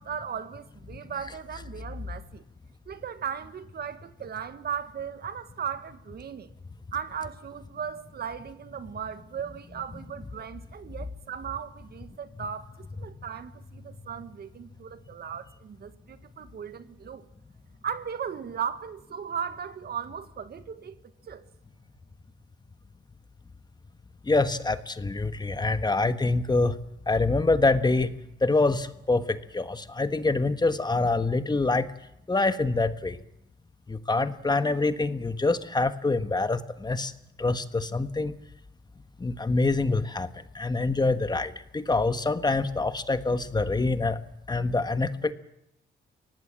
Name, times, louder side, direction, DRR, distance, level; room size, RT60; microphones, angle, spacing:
voice 1, 0.0-2.4 2.9-6.5 6.9-17.2 17.8-21.0 21.3-21.4, right 7 dB, 55° right, 1.5 m, -37 dB
voice 2, 24.3-26.8 27.1-28.1 28.4-31.9 32.3-33.2 33.9-37.1 37.4-38.3 39.2-40.3 40.5-44.2 44.5-45.3, left 3 dB, 20° left, 1.3 m, -25 dB
23.5 x 18.5 x 7.5 m
cardioid pair, 90°, 20 cm